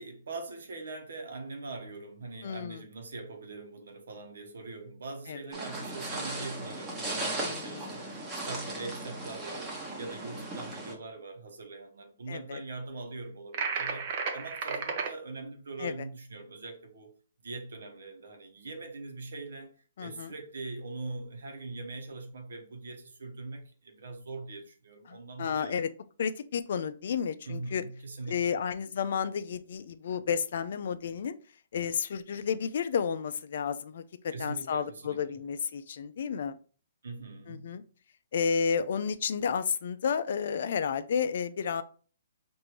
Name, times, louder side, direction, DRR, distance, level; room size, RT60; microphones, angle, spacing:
voice 1, 0.0-9.7 10.0-17.1 17.4-25.8 27.4-28.6 34.3-35.4 37.0-37.7, right 3 dB, 80° right, 1.0 m, -42 dB
voice 2, 2.4-2.8 5.3-5.4 7.4-8.0 12.3-12.6 15.8-15.9 20.0-20.3 25.1-25.9 26.2-27.8 28.3-31.4 31.7-36.6 37.5-37.8 38.3-41.8, left 7 dB, 60° left, 0.4 m, -31 dB
sound 1, 5.5-10.9, right 2 dB, 15° right, 1.0 m, -37 dB
sound 2, 13.5-15.1, right 5 dB, 45° right, 0.7 m, -32 dB
4.4 x 2.6 x 3.1 m
hypercardioid pair, 145°, 0 cm